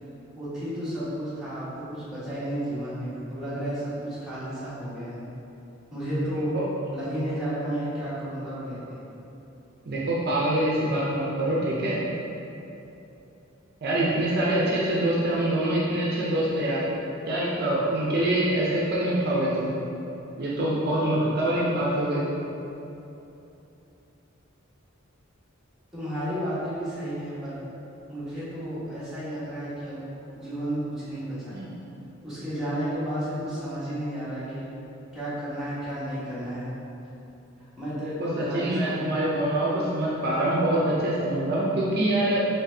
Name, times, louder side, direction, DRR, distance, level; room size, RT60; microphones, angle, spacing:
voice 1, 0.3-5.2 5.9-6.6 6.9-9.0 25.9-27.7 28.1-30.0 30.3-31.6 32.2-34.7 35.1-36.7 37.8-39.4, equal, 5° right, -13 dB, 1.4 m, -32 dB
voice 2, 9.8-12.0 13.8-16.8 17.3-19.7 20.4-22.2 31.5-31.7 38.2-42.4, right 1 dB, 50° right, -6 dB, 0.5 m, -25 dB
4.3 x 3.4 x 2.7 m, 2.9 s
head